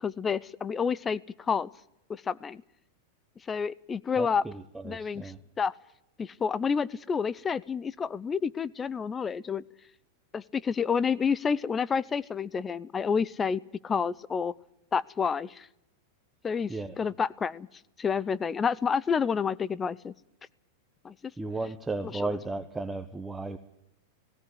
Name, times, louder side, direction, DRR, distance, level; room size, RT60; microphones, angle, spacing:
voice 1, 0.0-1.7 2.1-2.6 3.5-4.4 4.8-5.3 5.6-5.7 6.2-9.6 10.3-14.5 14.9-15.7 16.4-17.7 18.0-20.1 21.0-21.1 22.0-22.3, left 6 dB, 20° left, 22 dB, 0.7 m, -29 dB
voice 2, 4.2-5.4 16.7-16.9 21.4-23.6, right 3 dB, 10° right, 7 dB, 1.1 m, -35 dB
18.0 x 17.5 x 9.6 m, 0.82 s
hypercardioid pair, 125°, 0 cm